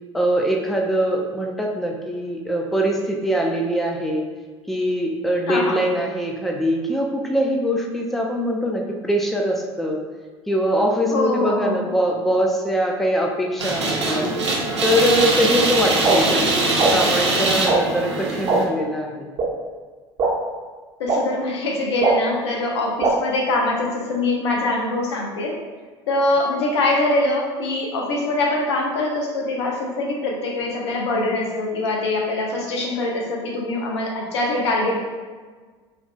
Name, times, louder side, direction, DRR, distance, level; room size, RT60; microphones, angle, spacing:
voice 1, 0.1-4.3 4.7-10.0 10.5-14.3 14.8-19.3, equal, ahead, 0 dB, 0.5 m, -22 dB
voice 2, 5.5-5.8 11.1-11.9 21.0-25.6 26.1-35.0, left 2 dB, 70° left, -1 dB, 0.7 m, -23 dB
sound 1, 13.6-18.6, right 2 dB, 85° right, 0.6 m, -22 dB
sound 2, 16.0-16.1 16.8-16.9 17.7-17.8 18.5-18.6 19.4-19.5 20.2-20.3 21.1-21.2 22.0-22.1 23.0-23.1, right 4 dB, 40° right, 0.9 m, -18 dB
4.8 x 2.6 x 2.2 m, 1.4 s
figure-of-eight pair, 65°, 15 cm